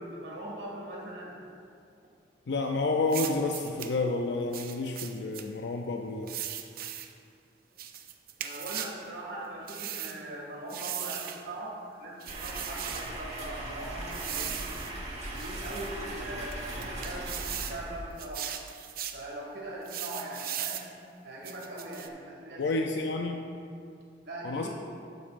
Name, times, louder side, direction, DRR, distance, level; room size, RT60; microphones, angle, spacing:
voice 1, 0.0-1.4 8.4-14.8 15.4-18.5 19.1-20.9 21.2-23.1 24.2-24.7, right 1 dB, 75° right, -3 dB, 2.1 m, -41 dB
voice 2, 2.5-6.3 22.6-23.4 24.4-24.7, left 3 dB, 80° left, 3 dB, 0.5 m, -30 dB
sound 1, 3.1-3.9 4.5-5.5 6.3-7.1 7.8-9.0 9.7-10.2 10.7-11.4 12.2-13.1 14.1-14.9 15.4-15.9 16.5-17.8 18.2-19.2 19.9-20.9 21.4-22.1, right 10 dB, 55° right, 0.5 m, -38 dB
sound 2, 12.3-18.3, right 1 dB, 40° right, 1.4 m, -39 dB
12.0 x 8.5 x 2.5 m, 2.4 s
head